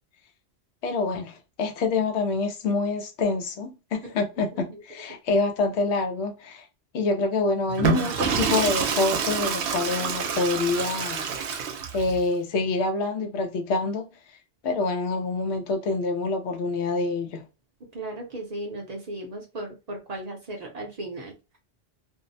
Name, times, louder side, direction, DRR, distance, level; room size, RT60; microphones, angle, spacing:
voice 1, 0.8-6.7 6.9-11.3 11.9-14.1 14.6-17.5, left 3 dB, 90° left, 0.9 m, -26 dB
Water / Toilet flush, 7.7-12.2, right 6 dB, 85° right, 0.9 m, -27 dB
voice 2, 17.9-21.3, right 1 dB, 45° right, 0.6 m, -36 dB
2.6 x 2.0 x 2.6 m
omnidirectional pair, 1.1 m